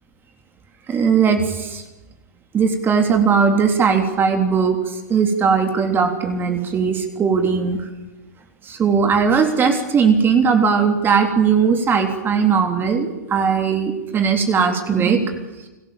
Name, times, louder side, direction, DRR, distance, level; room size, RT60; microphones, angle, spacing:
voice 1, 0.9-1.8 2.5-4.8 5.1-7.8 8.7-15.3, right 6 dB, 20° right, 4 dB, 3.4 m, -18 dB
30.0 x 21.0 x 7.3 m, 1.1 s
hypercardioid pair, 110°, 10 cm